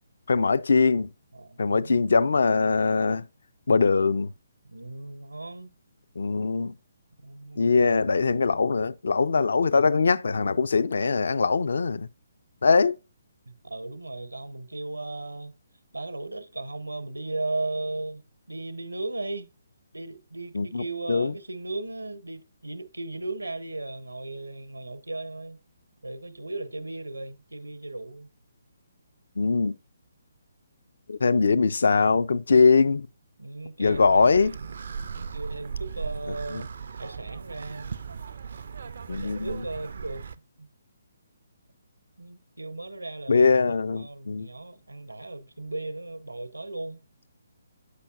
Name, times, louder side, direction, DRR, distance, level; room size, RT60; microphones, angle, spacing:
voice 1, 0.3-1.1 1.6-3.2 3.7-4.3 6.2-6.7 7.6-12.1 12.6-13.0 20.5-20.8 21.1-21.3 29.4-29.7 31.1-33.1 33.8-34.5 39.1-39.5 43.3-44.5, left 4 dB, 60° left, 0.4 m, -22 dB
voice 2, 1.3-2.1 4.6-5.7 7.2-7.8 13.5-15.5 15.9-19.5 19.9-25.6 26.0-28.3 33.4-34.7 35.1-36.7 37.0-37.9 39.1-40.3 40.6-40.7 42.2-43.5 44.0-47.0, right 2 dB, 80° right, 0.8 m, -36 dB
sound 1, 33.9-40.4, right 6 dB, 55° right, 0.4 m, -37 dB
8.2 x 5.6 x 2.3 m
figure-of-eight pair, 135°, 0 cm